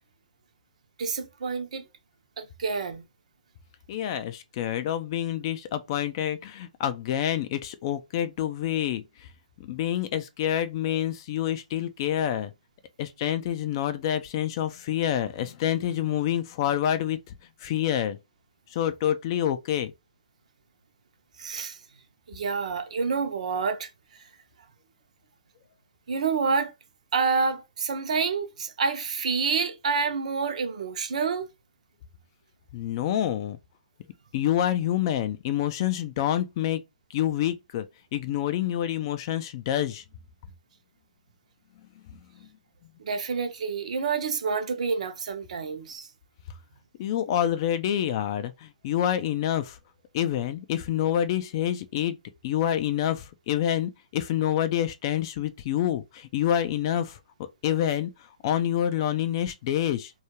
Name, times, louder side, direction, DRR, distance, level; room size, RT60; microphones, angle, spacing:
voice 1, 1.0-1.8 2.4-3.0 21.4-21.8 22.3-23.9 26.1-26.7 27.1-31.5 43.0-46.1, right 5 dB, 65° right, 0.6 m, -28 dB
voice 2, 3.9-9.0 9.6-12.5 13.0-17.2 17.6-18.2 18.7-19.9 32.7-33.6 34.3-36.8 37.1-37.9 38.1-40.0 47.0-49.8 50.1-52.2 52.4-57.2 57.6-58.1 58.4-60.1, left 11 dB, 40° left, 0.3 m, -27 dB
2.3 x 2.1 x 2.9 m
hypercardioid pair, 145°, 4 cm